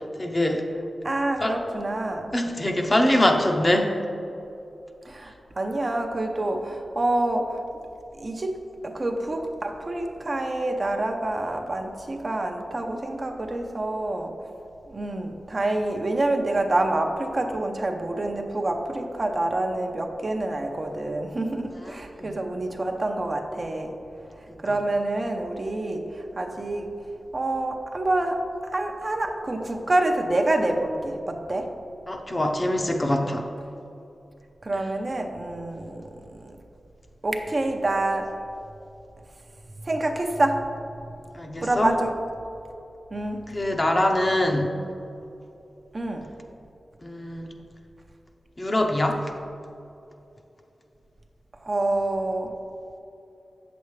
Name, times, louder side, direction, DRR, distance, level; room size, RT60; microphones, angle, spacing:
voice 1, 0.2-0.7 1.4-1.5 2.3-3.9 21.9-22.3 24.5-24.6 32.1-33.5 41.3-41.9 43.5-44.7 47.0-47.5 48.6-49.2, left 1 dB, 25° left, 3 dB, 0.7 m, -23 dB
voice 2, 1.0-2.3 5.0-7.6 8.2-14.3 14.9-23.9 24.6-26.9 27.3-28.4 28.7-31.7 34.6-36.6 37.2-38.4 39.8-40.7 41.6-42.2 43.1-43.5 45.9-46.3 51.6-52.5, right 2 dB, 40° right, 3 dB, 0.7 m, -27 dB
8.0 x 7.0 x 3.2 m, 2.7 s
wide cardioid pair, 75°, 0 cm